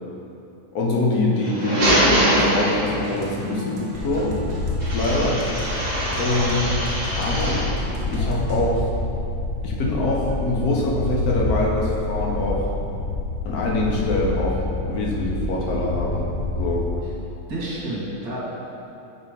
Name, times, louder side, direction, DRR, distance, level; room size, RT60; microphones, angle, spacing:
voice 1, 0.7-4.3 4.9-5.4 6.2-6.8 7.2-7.6 8.0-8.9 9.6-12.7 13.4-16.3 16.6-16.9, left 2 dB, 85° left, -3 dB, 1.5 m, -24 dB
sound 1, 1.3-3.2 4.8-7.8, right 1 dB, 35° right, 1.1 m, -23 dB
sound 2, 2.9-8.7, right 1 dB, 50° right, 0.7 m, -38 dB
sound 3, 3.9-17.0, left 2 dB, 55° left, 0.7 m, -27 dB
voice 2, 17.5-18.4, right 1 dB, 85° right, -6 dB, 2.0 m, -30 dB
7.7 x 4.2 x 3.5 m, 2.8 s
omnidirectional pair, 1.5 m